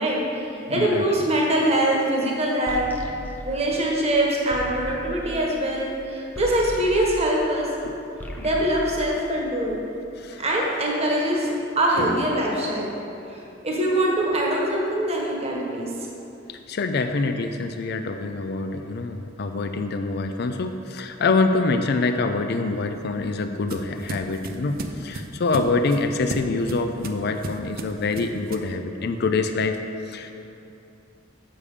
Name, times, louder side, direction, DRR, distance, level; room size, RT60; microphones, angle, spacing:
voice 1, 0.0-2.9 3.4-7.7 8.4-9.8 10.4-11.5 11.8-12.9 13.3-15.9, right 1 dB, 35° right, -2 dB, 1.2 m, -23 dB
voice 2, 0.7-1.1 7.8-7.9 10.2-10.4 16.5-29.8 30.1-30.3, left 3 dB, 55° left, 7 dB, 0.4 m, -25 dB
sound 1, 2.7-7.8 8.1-9.9, equal, 10° left, 0.5 m, -38 dB
sound 2, 22.7-28.8, right 2 dB, 50° right, 0.5 m, -36 dB
7.1 x 6.8 x 4.9 m, 2.7 s
head